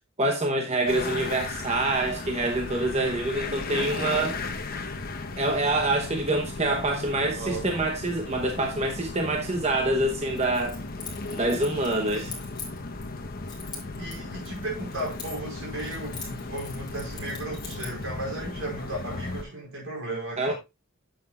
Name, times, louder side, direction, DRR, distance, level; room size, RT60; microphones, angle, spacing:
voice 1, 0.2-4.4 5.4-10.8 11.3-12.3 20.4-20.5, right 2 dB, 30° right, 1.0 m, -26 dB
sound 1, 0.9-19.4, left 3 dB, 45° left, 1.0 m, -36 dB
voice 2, 7.2-7.9 12.1-12.4 14.0-20.5, right 1 dB, 75° right, 5.0 m, -35 dB
Keys jangling, 10.4-13.1 13.5-15.5 15.8-18.0, left 5 dB, 20° left, 3.3 m, -42 dB
9.5 x 7.7 x 2.4 m
head